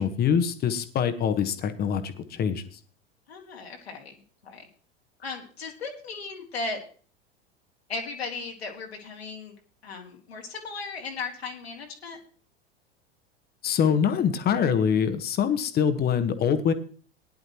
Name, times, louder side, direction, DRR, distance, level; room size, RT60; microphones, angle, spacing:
voice 1, 0.0-2.6 13.6-16.7, left 7 dB, 30° left, 11 dB, 1.3 m, -24 dB
voice 2, 3.3-4.7 5.2-6.8 7.9-9.5 9.8-12.2, left 4 dB, 75° left, 2 dB, 2.5 m, -36 dB
17.5 x 10.5 x 3.0 m, 0.42 s
figure-of-eight pair, 85°, 31 cm